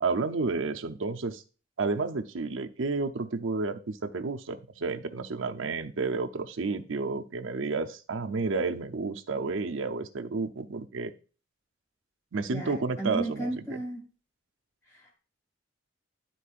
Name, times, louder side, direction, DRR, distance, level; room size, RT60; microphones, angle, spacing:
voice 1, 0.0-1.4 1.8-11.1 12.3-13.6, right 4 dB, 85° right, 7 dB, 0.6 m, -31 dB
voice 2, 12.5-14.1 14.9-15.2, right 2 dB, 15° left, -2 dB, 2.2 m, -34 dB
11.5 x 4.5 x 2.5 m, 0.36 s
head